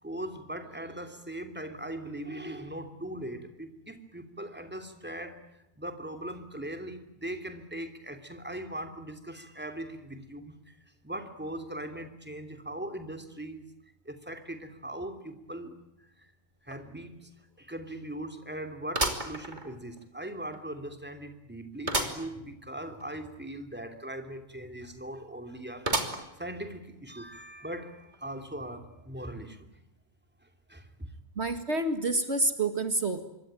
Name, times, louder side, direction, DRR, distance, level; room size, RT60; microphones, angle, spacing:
voice 1, 0.0-5.4 5.8-10.5 11.0-13.7 14.0-15.8 16.6-17.3 17.6-26.0 26.4-29.7 30.7-31.1, right 1 dB, 10° right, 6 dB, 3.0 m, -40 dB
sound 1, 16.7-16.8 17.2-17.3 18.9-20.0 20.5-20.6 21.9-22.3 22.7-22.8 23.0-23.1 25.9-26.5 27.1-27.2 28.1-28.2, right 2 dB, 35° right, 3.4 m, -31 dB
voice 2, 31.4-33.2, right 2 dB, 55° right, 8 dB, 2.1 m, -28 dB
26.5 x 24.0 x 9.1 m, 0.88 s
omnidirectional pair, 1.4 m